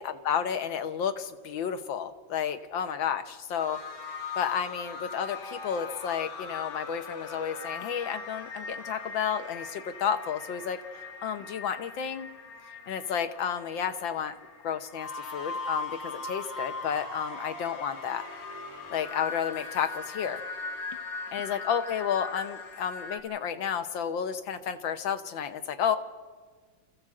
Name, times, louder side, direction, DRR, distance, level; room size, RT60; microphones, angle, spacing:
voice 1, 0.0-3.8 4.4-12.3 12.9-14.4 14.6-18.2 18.9-20.4 21.3-26.0, left 8 dB, 85° left, 9 dB, 1.8 m, -31 dB
sound 1, 3.6-23.2, left 4 dB, 70° left, 2.6 m, -40 dB
25.5 x 14.5 x 7.7 m, 1.5 s
omnidirectional pair, 2.1 m